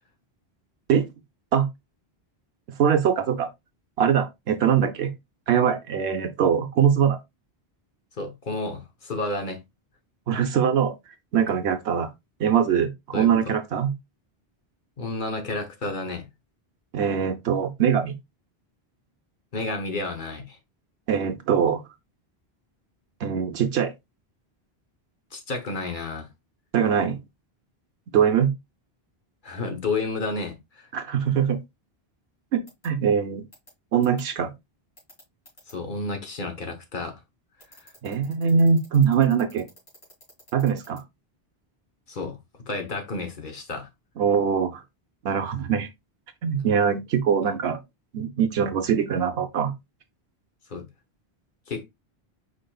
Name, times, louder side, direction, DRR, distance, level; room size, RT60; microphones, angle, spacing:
voice 1, 2.8-3.5 4.0-5.1 5.5-7.2 10.3-11.0 11.3-12.1 12.4-13.9 16.9-18.2 21.1-21.8 23.2-23.9 26.7-27.2 28.1-28.5 30.9-31.6 32.5-33.4 33.9-34.5 38.0-39.7 40.5-41.0 44.2-44.8 45.2-45.9 46.4-47.8 48.1-49.7, right 7 dB, 85° right, 0.9 m, -22 dB
voice 2, 8.2-9.6 13.1-13.5 15.0-16.3 19.5-20.6 25.3-26.3 29.4-30.9 35.7-37.2 42.1-42.4 42.7-43.9 47.4-47.5 50.7-50.8 51.7-51.9, left 3 dB, 50° left, 1.2 m, -31 dB
sound 1, 32.7-32.9 33.5-33.7 34.0-34.2 35.0-35.7 37.6-41.0, equal, 70° left, 2.8 m, -50 dB
5.1 x 4.5 x 2.3 m
omnidirectional pair, 1.1 m